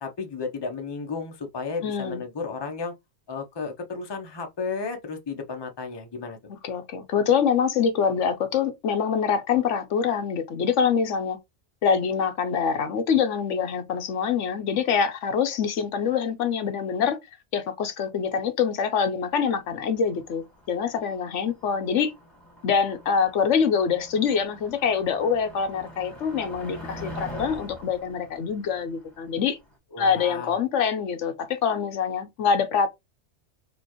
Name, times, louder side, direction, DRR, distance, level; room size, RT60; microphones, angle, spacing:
voice 1, 0.0-2.9 3.3-6.4 29.9-30.6, left 4 dB, 25° left, 0.7 m, -33 dB
voice 2, 1.8-2.2 6.6-11.4 11.8-17.2 17.5-22.1 22.6-29.6 30.0-32.9, left 6 dB, 85° left, 1.1 m, -25 dB
Motor vehicle (road), 19.4-29.7, equal, ahead, 1.7 m, -44 dB
4.3 x 3.0 x 3.0 m
omnidirectional pair, 1.2 m